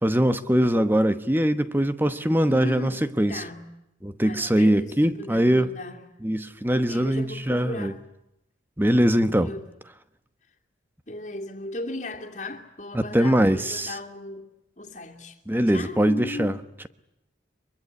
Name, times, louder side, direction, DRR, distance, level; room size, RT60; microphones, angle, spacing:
voice 1, 0.0-2.9 3.2-3.4 4.0-5.7 6.2-7.9 8.8-9.5 12.9-13.9 15.5-16.5, equal, 10° right, 1.0 m, -22 dB
voice 2, 2.5-3.7 4.2-6.1 6.9-8.1 9.3-9.7 11.1-14.5 14.8-15.4 15.7-16.6, left 2 dB, 40° left, 2.6 m, -36 dB
24.0 x 23.5 x 9.8 m
head